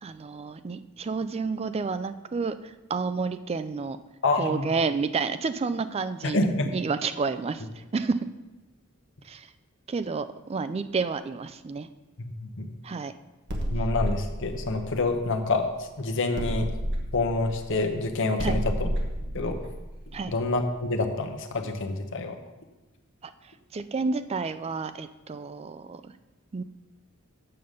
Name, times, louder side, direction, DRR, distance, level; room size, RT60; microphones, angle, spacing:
voice 1, 0.0-4.0 4.4-6.4 6.7-7.6 7.9-8.3 9.2-9.5 9.9-11.9 12.8-13.1 18.4-18.6 20.1-20.3 23.2-23.3 23.7-26.0 26.5-26.6, right 4 dB, 30° right, 12 dB, 0.3 m, -30 dB
voice 2, 4.2-4.7 6.2-6.7 12.2-12.7 13.7-16.7 17.1-18.9 19.3-19.6 20.3-22.3, left 2 dB, 60° left, 4 dB, 0.9 m, -27 dB
sound 1, 13.5-15.8 16.4-21.0, equal, 50° right, 1.3 m, -31 dB
7.8 x 5.4 x 6.5 m, 1.1 s
head